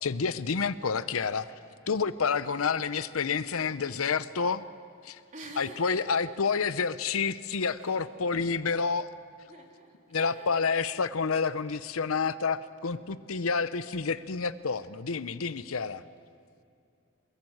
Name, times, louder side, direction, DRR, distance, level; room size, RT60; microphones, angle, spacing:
voice 1, 0.0-1.5 1.9-4.6 5.0-5.2 5.6-9.1 10.1-16.0, left 5 dB, 80° left, 14 dB, 0.7 m, -29 dB
voice 2, 5.3-6.4 7.8-8.0 8.3-8.5 9.5-10.5, right 1 dB, 35° right, 1 dB, 3.2 m, -47 dB
23.0 x 22.0 x 7.9 m, 2.4 s
head